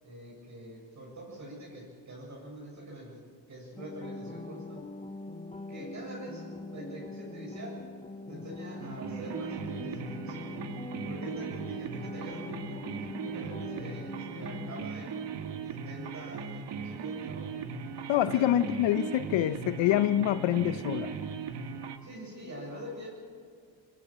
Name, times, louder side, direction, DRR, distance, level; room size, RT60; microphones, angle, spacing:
voice 1, 0.0-3.2 3.5-4.8 5.7-7.8 8.3-10.5 11.0-15.2 15.7-17.6 18.3-18.5 22.0-23.1, right 1 dB, 40° right, -3 dB, 8.0 m, -45 dB
sound 1, 3.8-14.9, left 2 dB, 15° left, 1.2 m, -42 dB
sound 2, 8.8-22.0, right 6 dB, 65° right, 1.9 m, -38 dB
voice 2, 18.1-21.1, left 12 dB, 75° left, 12 dB, 1.1 m, -26 dB
23.5 x 21.5 x 7.6 m, 2.1 s
cardioid pair, 100°, 45 cm